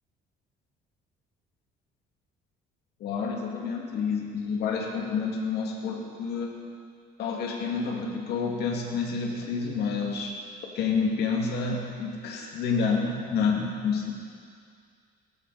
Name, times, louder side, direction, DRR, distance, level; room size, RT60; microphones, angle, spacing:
voice 1, 3.0-6.5 7.2-10.4 10.7-14.1, left 5 dB, 75° left, -1 dB, 2.4 m, -29 dB
18.5 x 14.0 x 4.3 m, 2.2 s
cardioid pair, 110°, 17 cm